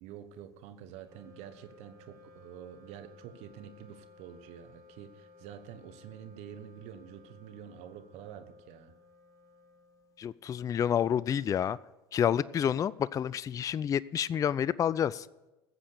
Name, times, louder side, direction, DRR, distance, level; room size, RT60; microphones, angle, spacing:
voice 1, 0.0-8.9, right 9 dB, 60° right, 10 dB, 1.1 m, -48 dB
Wind instrument woodwind instrument, 1.0-10.6, left 3 dB, 25° right, 4.6 m, -58 dB
voice 2, 10.2-11.8 12.1-15.3, left 9 dB, 25° left, 19 dB, 0.4 m, -29 dB
14.5 x 7.6 x 6.7 m, 1.1 s
hypercardioid pair, 75°, 13 cm